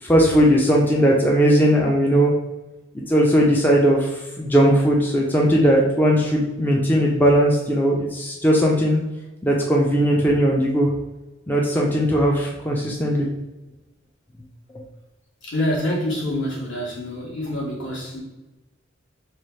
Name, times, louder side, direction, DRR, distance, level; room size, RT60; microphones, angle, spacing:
voice 1, 0.0-2.3 2.9-9.0 9.4-10.9 11.5-13.3, equal, 10° left, -2 dB, 0.4 m, -18 dB
voice 2, 15.4-18.2, left 1 dB, 65° left, -3 dB, 1.3 m, -26 dB
3.2 x 2.3 x 4.1 m, 1.1 s
head